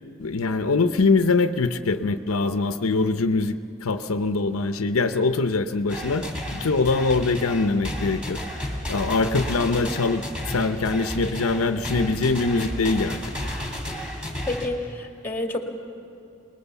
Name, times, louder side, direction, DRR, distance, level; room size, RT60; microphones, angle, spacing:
voice 1, 0.2-6.2 6.5-8.4 8.9-13.3, left 3 dB, 80° left, 9 dB, 0.7 m, -23 dB
sound 1, 5.9-14.7, equal, 5° right, 3.2 m, -32 dB
voice 2, 14.5-15.6, left 2 dB, 10° left, 3 dB, 2.1 m, -29 dB
25.0 x 20.5 x 7.1 m, 2.7 s
head